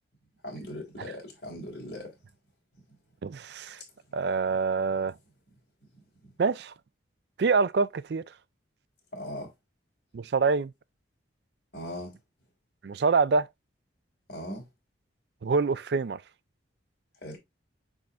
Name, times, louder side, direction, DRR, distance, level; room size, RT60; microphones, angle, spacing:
voice 1, 0.4-2.1 2.7-2.8 6.2-6.3 9.1-9.5 11.7-12.1 14.3-14.6 17.2-17.4, left 1 dB, 55° left, 4.0 m, -39 dB
voice 2, 3.2-3.8 4.1-5.1 6.4-6.7 7.4-8.2 10.1-10.7 12.8-13.5 15.4-16.2, right 4 dB, 60° right, 0.4 m, -25 dB
10.5 x 3.7 x 2.5 m
head